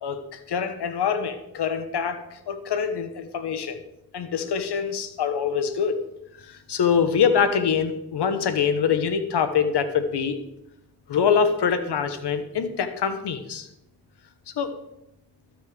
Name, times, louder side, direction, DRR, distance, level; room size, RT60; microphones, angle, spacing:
voice 1, 0.0-3.8 4.1-6.0 6.5-10.4 11.1-13.7 14.6-14.7, left 7 dB, 80° left, 10 dB, 1.3 m, -24 dB
12.5 x 6.4 x 6.7 m, 0.85 s
cardioid pair, 50°, 40 cm